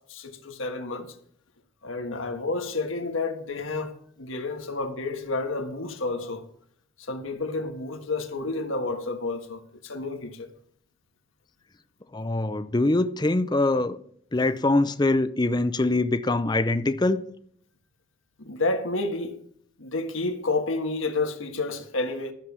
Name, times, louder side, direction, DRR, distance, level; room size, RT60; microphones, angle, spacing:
voice 1, 0.1-1.1 1.8-6.4 7.0-10.5 18.4-19.4 19.8-22.3, left 3 dB, 90° left, 1.5 m, -30 dB
voice 2, 12.1-14.0 14.3-17.3, left 2 dB, 20° left, 0.5 m, -23 dB
13.0 x 7.1 x 6.0 m
head